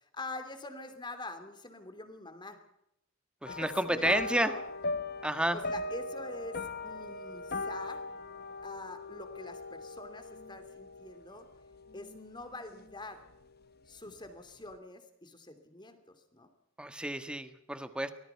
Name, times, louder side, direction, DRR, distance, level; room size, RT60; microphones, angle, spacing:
voice 1, 0.0-2.6 3.5-4.6 5.5-8.1 8.6-11.5 11.9-13.3 13.9-16.5, left 2 dB, 20° left, 9 dB, 2.9 m, -45 dB
voice 2, 3.4-4.5 5.2-5.6 16.8-18.1, right 1 dB, 5° right, 10 dB, 1.5 m, -30 dB
sound 1, 3.5-13.0 13.3-13.7 14.1-14.2, left 3 dB, 50° left, 1.0 m, -40 dB
24.5 x 18.5 x 5.8 m, 0.80 s
head